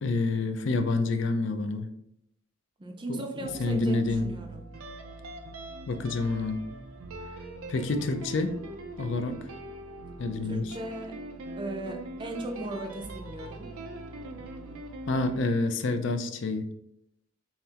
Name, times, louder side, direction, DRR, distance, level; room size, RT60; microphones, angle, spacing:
voice 1, 0.0-1.9 3.1-4.3 5.9-6.6 7.7-8.6 9.0-9.4 10.2-10.7 15.1-16.7, left 3 dB, 60° left, 8 dB, 0.4 m, -28 dB
voice 2, 2.8-4.6 10.4-11.2 11.6-13.7, right 1 dB, 25° right, 3 dB, 0.4 m, -37 dB
sound 1, 3.4-15.4, right 2 dB, 90° right, 0.5 m, -42 dB
5.6 x 2.1 x 2.8 m, 0.77 s
head